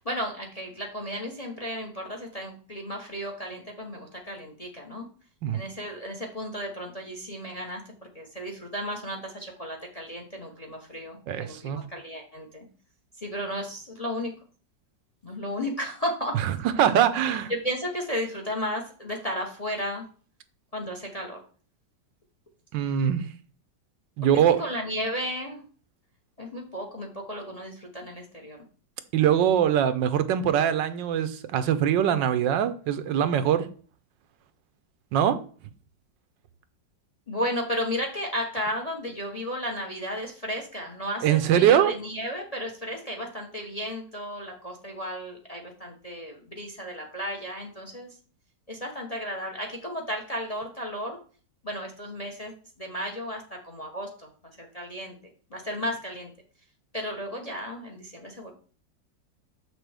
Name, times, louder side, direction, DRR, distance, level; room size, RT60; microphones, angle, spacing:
voice 1, 0.0-5.1 5.5-12.6 13.2-14.3 15.2-16.3 17.5-20.1 20.7-21.4 24.6-25.6 26.4-28.6 37.3-48.1 48.7-51.2 51.6-55.2 55.5-56.3 56.9-58.5, equal, 30° left, 0.7 m, -34 dB
voice 2, 11.3-11.9 16.8-17.5 22.7-23.2 24.2-24.6 29.1-33.7 35.1-35.4 41.2-41.9, right 9 dB, 90° right, 1.4 m, -22 dB
6.7 x 6.2 x 3.3 m
omnidirectional pair, 1.9 m